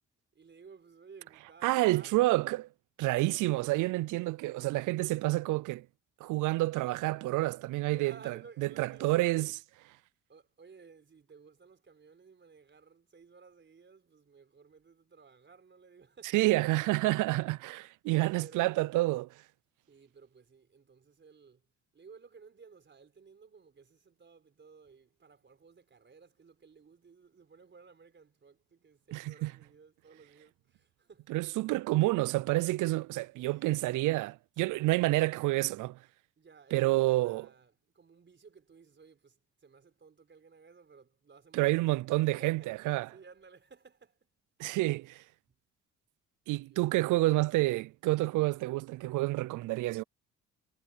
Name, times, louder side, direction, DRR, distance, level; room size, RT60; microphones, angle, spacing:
voice 1, 0.3-2.4 3.1-3.7 7.9-9.5 10.3-16.5 18.3-18.9 19.9-31.4 33.3-34.1 36.4-42.0 42.2-44.3 45.5-45.6 46.6-47.2, right 5 dB, 40° right, 4.3 m, -56 dB
voice 2, 1.6-2.6 3.0-5.9 6.2-8.1 8.8-9.5 16.3-19.3 29.1-29.5 31.3-36.0 36.7-37.4 41.5-43.1 44.6-45.2 46.5-50.0, right 19 dB, 85° right, 0.5 m, -28 dB
cardioid pair, 90°, 30 cm